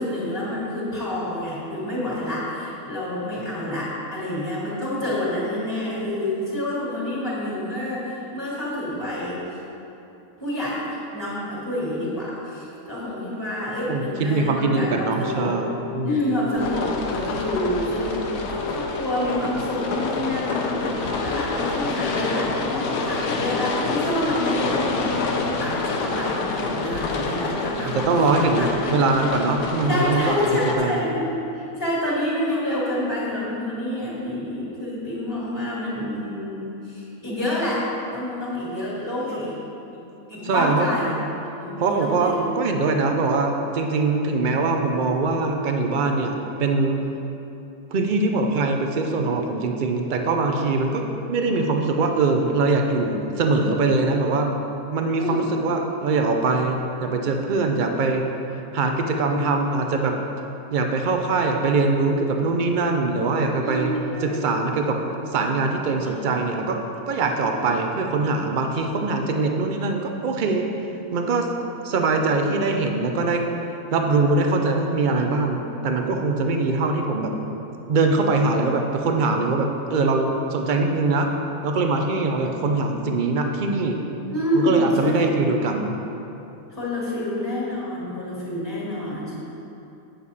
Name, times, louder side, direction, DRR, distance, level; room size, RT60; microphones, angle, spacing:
voice 1, 0.0-9.6 10.4-15.5 16.0-18.2 18.5-28.0 28.5-28.9 29.8-31.3 31.5-37.8 38.1-39.5 40.3-41.1 41.5-42.5 55.2-55.5 63.6-64.3 67.4-67.7 84.3-85.3 86.7-89.3, left 1 dB, 10° left, -9 dB, 2.1 m, -27 dB
voice 2, 13.9-16.2 27.8-30.5 30.8-31.0 40.4-40.9 41.8-47.1 47.9-51.0 51.3-54.6 54.9-58.2 58.7-60.1 60.7-63.9 64.2-65.0 65.3-66.8 67.1-70.7 71.1-71.5 71.8-73.4 73.9-77.3 77.9-81.3 81.6-84.0 84.5-86.0, right 3 dB, 70° right, 3 dB, 0.4 m, -22 dB
sound 1, 14.1-19.2, left 4 dB, 70° left, 1.4 m, -37 dB
sound 2, 16.5-30.7, left 3 dB, 90° left, 1.3 m, -27 dB
8.9 x 6.9 x 4.2 m, 2.9 s
omnidirectional pair, 1.7 m